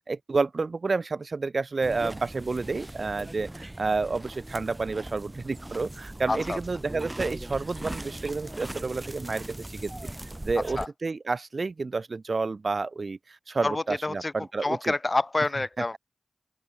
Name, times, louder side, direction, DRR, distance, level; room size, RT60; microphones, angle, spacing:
voice 1, 0.1-9.9 10.5-14.9, right 3 dB, 60° right, 0.7 m, -30 dB
sound 1, 1.8-10.9, right 1 dB, 20° right, 2.0 m, -39 dB
voice 2, 6.3-6.6 10.8-10.9 13.6-14.3 14.6-16.0, left 2 dB, 35° left, 0.7 m, -27 dB
open air
cardioid pair, 55°, 0 cm